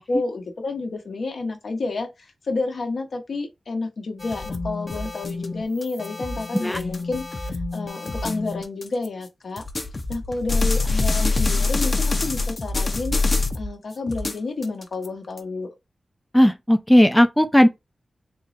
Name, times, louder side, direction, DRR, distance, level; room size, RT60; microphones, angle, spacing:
voice 1, 0.0-9.6 10.1-13.2 13.5-15.7, left 3 dB, 75° left, 1.0 m, -30 dB
sound 1, 4.2-9.1 9.6-13.7 14.1-15.4, left 3 dB, 45° left, 0.7 m, -25 dB
voice 2, 16.3-17.7, equal, 10° left, 0.5 m, -16 dB
3.6 x 2.0 x 4.1 m
cardioid pair, 60°, 0 cm